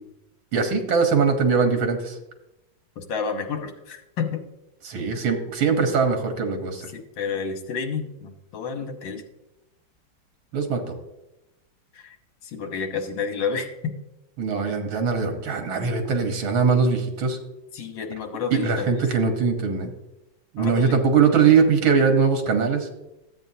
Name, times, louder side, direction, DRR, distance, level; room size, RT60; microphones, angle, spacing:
voice 1, 0.5-2.2 4.9-6.9 10.5-10.8 14.4-17.4 18.5-19.9 20.5-22.9, right 5 dB, 85° right, 4 dB, 2.0 m, -21 dB
voice 2, 3.0-4.4 6.7-9.2 11.9-12.2 12.4-13.9 17.7-19.0 20.6-21.0, left 5 dB, 70° left, 5 dB, 1.8 m, -30 dB
13.5 x 8.2 x 2.8 m, 0.95 s
omnidirectional pair, 2.2 m